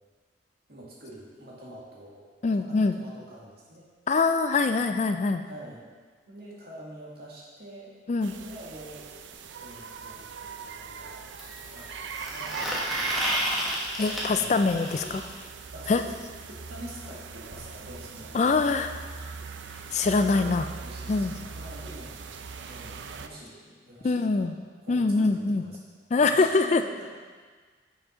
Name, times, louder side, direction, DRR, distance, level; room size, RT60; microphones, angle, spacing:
voice 1, 0.7-2.3 2.5-3.9 5.4-5.8 6.3-7.9 8.2-9.0 9.6-11.2 11.7-13.3 14.3-15.4 15.7-16.1 16.5-18.4 20.1-22.2 22.6-24.5 24.8-25.8 26.2-27.1, right 1 dB, 55° right, -5 dB, 2.0 m, -46 dB
voice 2, 2.4-2.9 4.1-5.4 8.1-8.3 14.0-14.9 15.9-16.0 18.3-18.9 19.9-20.7 21.1-21.3 24.0-24.5 24.9-25.6 26.1-26.8, left 3 dB, 35° left, 8 dB, 0.3 m, -23 dB
sound 1, 8.2-23.3, right 5 dB, 75° right, 0.5 m, -40 dB
sound 2, 9.3-9.4 11.3-15.2 17.1-17.2 17.5-17.6 17.9-18.0 18.9-19.0, equal, ahead, 1.1 m, -32 dB
7.3 x 6.0 x 5.1 m, 1.5 s
head